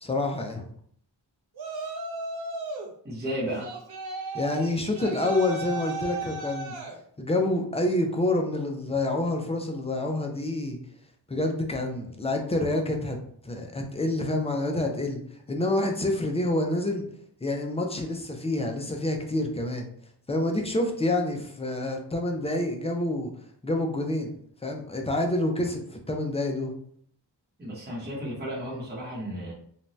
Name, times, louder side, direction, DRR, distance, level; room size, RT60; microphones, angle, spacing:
voice 1, 0.0-0.7 4.3-6.7 7.2-10.8 11.3-13.2 13.4-15.2 15.5-17.0 17.4-19.9 20.3-23.3 23.6-24.3 24.6-26.7, left 1 dB, 15° left, 2 dB, 0.3 m, -27 dB
Yell, 1.5-2.9 3.6-7.0, right 2 dB, 60° right, 0.6 m, -35 dB
voice 2, 3.0-3.7 27.6-29.5, equal, 25° right, -4 dB, 0.8 m, -33 dB
2.6 x 2.2 x 3.0 m, 0.63 s
wide cardioid pair, 145°, 43 cm